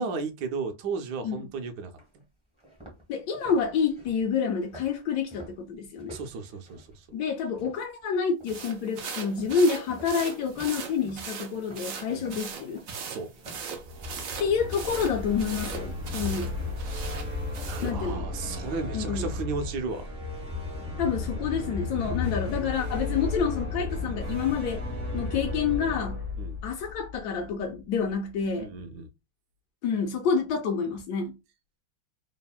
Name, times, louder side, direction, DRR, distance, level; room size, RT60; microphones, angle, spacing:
voice 1, 0.0-2.2 6.1-7.1 12.2-12.3 13.1-13.5 17.7-20.1 26.4-26.6 28.6-29.1, right 4 dB, 70° right, 1.0 m, -34 dB
sound 1, 1.4-1.5 2.0-2.1 2.5-8.0 8.4-8.8 9.4-13.7, equal, 10° right, 0.4 m, -49 dB
voice 2, 3.1-6.1 7.1-12.8 14.4-16.5 17.8-18.2 18.9-19.3 21.0-24.8 25.1-26.2 26.6-28.7 29.8-31.4, left 6 dB, 80° left, 0.9 m, -28 dB
sound 2, 8.5-18.0, right 6 dB, 90° right, 0.7 m, -39 dB
sound 3, 13.8-27.8, left 3 dB, 55° right, 0.6 m, -34 dB
3.5 x 2.0 x 2.3 m
omnidirectional pair, 2.2 m